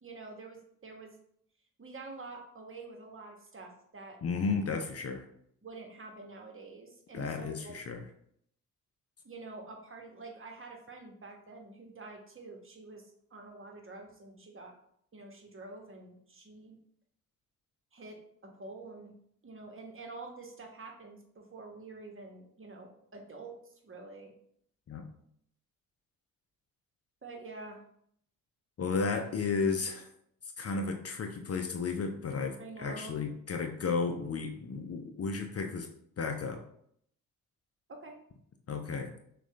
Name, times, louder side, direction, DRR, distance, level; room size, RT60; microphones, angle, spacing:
voice 1, 0.0-1.1 1.8-4.2 5.6-7.8 9.2-13.0 13.3-14.7 15.1-16.8 17.9-19.1 19.4-23.5 23.8-24.3 27.2-27.8 32.6-33.2 37.9-38.2, right 3 dB, 30° right, 2 dB, 1.3 m, -47 dB
voice 2, 4.2-5.2 7.1-8.0 24.9-25.1 28.8-30.1 30.6-35.9 36.2-36.6 38.7-39.1, left 4 dB, 35° left, 5 dB, 0.7 m, -33 dB
6.2 x 2.5 x 3.3 m, 0.68 s
hypercardioid pair, 40°, 40 cm